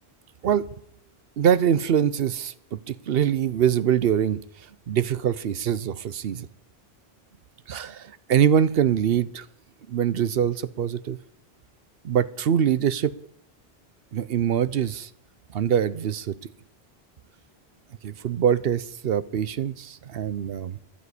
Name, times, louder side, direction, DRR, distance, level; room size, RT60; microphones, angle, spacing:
voice 1, 1.4-4.4 4.9-6.5 7.7-9.5 9.9-11.2 12.0-13.1 14.1-15.1 15.5-16.4 18.0-20.8, right 9 dB, 65° right, 16 dB, 0.9 m, -24 dB
11.5 x 9.2 x 8.3 m, 0.69 s
omnidirectional pair, 1.1 m